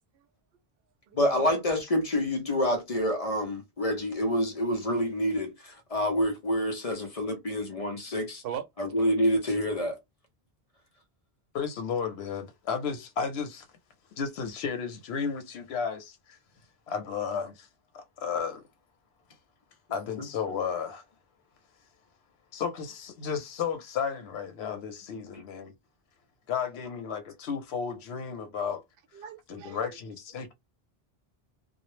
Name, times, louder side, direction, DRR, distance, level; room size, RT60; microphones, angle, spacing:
voice 1, 1.1-8.4 8.8-10.0 20.2-20.3, equal, 45° left, 0.5 m, -27 dB
voice 2, 11.5-13.7 14.2-16.4 16.9-17.7 17.9-18.6 19.9-21.0 22.5-25.7 26.5-28.8 29.5-30.5, left 6 dB, 85° left, 0.9 m, -33 dB
voice 3, 29.1-29.9, right 9 dB, 70° right, 0.8 m, -39 dB
2.2 x 2.0 x 3.0 m
omnidirectional pair, 1.0 m